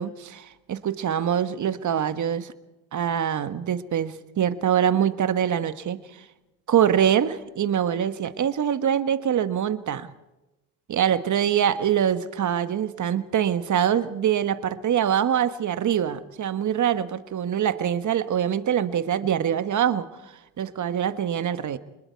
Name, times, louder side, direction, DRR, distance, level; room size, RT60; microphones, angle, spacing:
voice 1, 0.0-2.5 2.9-6.0 6.7-10.1 10.9-20.1 20.6-21.8, right 9 dB, 45° right, 11 dB, 1.5 m, -24 dB
28.0 x 21.0 x 4.6 m, 1.0 s
supercardioid pair, 70°, 42 cm